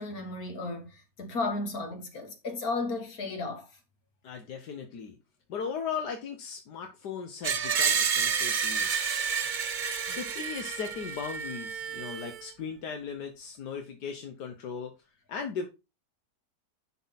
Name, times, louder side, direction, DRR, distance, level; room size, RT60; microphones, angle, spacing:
voice 1, 0.0-3.7, left 3 dB, 65° left, 2.4 m, -34 dB
voice 2, 4.2-5.2 5.5-9.1 10.1-14.9 15.3-15.7, left 6 dB, 80° left, 1.6 m, -37 dB
Screech, 7.4-12.4, right 6 dB, 50° right, 0.6 m, -30 dB
11.0 x 4.3 x 4.0 m
omnidirectional pair, 1.7 m